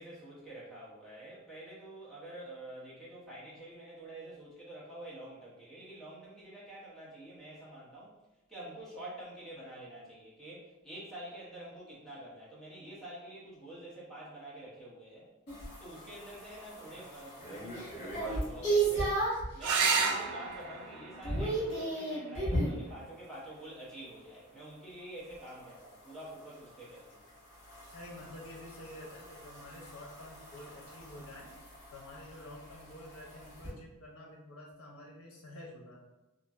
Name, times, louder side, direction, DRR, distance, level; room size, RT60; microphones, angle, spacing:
voice 1, 0.0-8.1 8.5-15.3 15.8-19.2 19.5-27.2, right 1 dB, ahead, -8 dB, 0.8 m, -47 dB
sound 1, 15.5-19.5 20.0-20.4 20.7-22.8 25.3-33.7, right 2 dB, 55° left, 1.4 m, -36 dB
sound 2, 19.6-24.6 26.5-27.2 30.6-30.7 31.0-31.1, right 5 dB, 90° right, 0.4 m, -35 dB
voice 2, 27.9-31.5 31.9-36.0, left 1 dB, 80° left, -2 dB, 0.6 m, -49 dB
2.9 x 2.5 x 2.4 m, 1.0 s
head